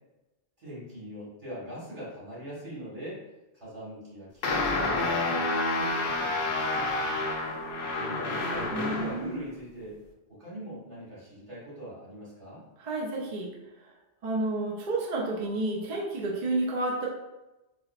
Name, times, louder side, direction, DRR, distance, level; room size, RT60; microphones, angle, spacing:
voice 1, 0.6-3.2 3.5-6.7 7.8-10.0 10.3-12.6, equal, 85° right, -8 dB, 2.0 m, -41 dB
sound 1, 4.4-9.3, left 2 dB, 60° left, 0.7 m, -29 dB
voice 2, 8.7-9.4 12.8-13.5 14.2-17.1, right 2 dB, 50° right, -3 dB, 0.7 m, -30 dB
4.6 x 2.0 x 2.4 m, 1.0 s
omnidirectional pair, 1.1 m